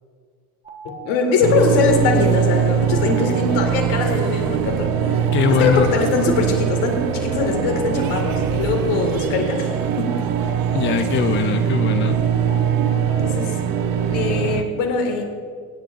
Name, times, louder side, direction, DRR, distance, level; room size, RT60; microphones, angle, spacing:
sound 1, 0.6-14.6, right 1 dB, 15° right, 1.5 m, -36 dB
voice 1, 0.8-5.2 5.5-10.2 13.2-13.6 14.1-15.2, left 4 dB, 65° left, 4 dB, 2.2 m, -22 dB
sound 2, 1.4-14.6, right 9 dB, 50° right, 0.9 m, -22 dB
voice 2, 5.3-5.9 10.7-12.2, left 8 dB, 25° left, 9 dB, 0.6 m, -21 dB
24.0 x 10.0 x 2.6 m, 2.1 s
hypercardioid pair, 65°, 46 cm